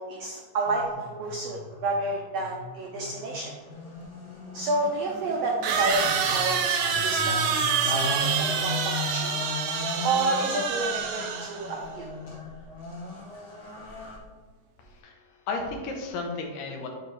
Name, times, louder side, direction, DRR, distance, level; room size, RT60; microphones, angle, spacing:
voice 1, 0.0-3.5 4.5-9.3 10.0-12.1, right 2 dB, 90° right, 0 dB, 1.4 m, -30 dB
sound 1, 0.6-14.2, left 2 dB, 55° left, 1.2 m, -37 dB
sound 2, 4.0-4.1 5.6-11.7, right 6 dB, 70° right, 1.7 m, -27 dB
voice 2, 14.8-16.9, left 3 dB, 90° left, 2 dB, 2.7 m, -34 dB
8.2 x 4.5 x 3.3 m, 1.4 s
omnidirectional pair, 3.8 m